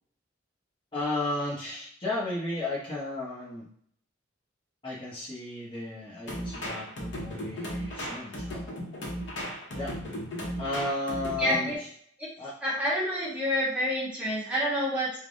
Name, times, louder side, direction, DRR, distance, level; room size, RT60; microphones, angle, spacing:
voice 1, 0.9-3.7 4.8-8.7 9.7-9.9 10.6-11.9 12.4-12.5, left 2 dB, 25° left, -7 dB, 0.8 m, -34 dB
sound 1, 6.3-11.8, equal, 80° left, 0.7 m, -36 dB
voice 2, 11.4-11.8 12.2-12.3 12.6-15.2, equal, 5° right, -7 dB, 1.0 m, -28 dB
3.3 x 2.1 x 2.5 m, 0.63 s
head